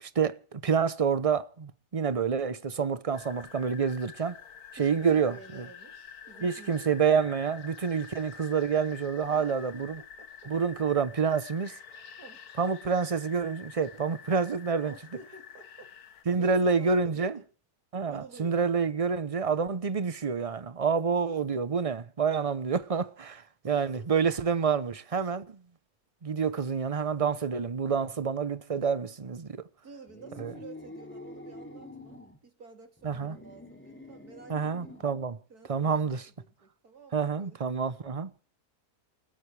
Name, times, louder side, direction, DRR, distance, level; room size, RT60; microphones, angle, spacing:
voice 1, 0.0-4.4 4.8-5.7 6.4-10.0 10.5-11.8 12.6-14.9 16.3-17.4 17.9-25.6 26.2-29.6 30.4-30.5 33.0-33.4 34.5-35.4 35.7-36.2 37.1-38.4, right 6 dB, 30° right, 0.6 m, -28 dB
sound 1, 3.1-16.2, left 7 dB, 70° left, 1.6 m, -48 dB
voice 2, 4.8-7.0 9.2-10.5 12.2-12.4 14.8-15.9 16.4-17.5 18.1-18.7 23.7-24.1 29.8-35.0 35.5-37.8, right 4 dB, 70° right, 3.6 m, -51 dB
sound 2, 30.1-32.4 33.0-35.2, left 1 dB, 5° left, 2.8 m, -47 dB
28.5 x 13.5 x 3.4 m
omnidirectional pair, 1.7 m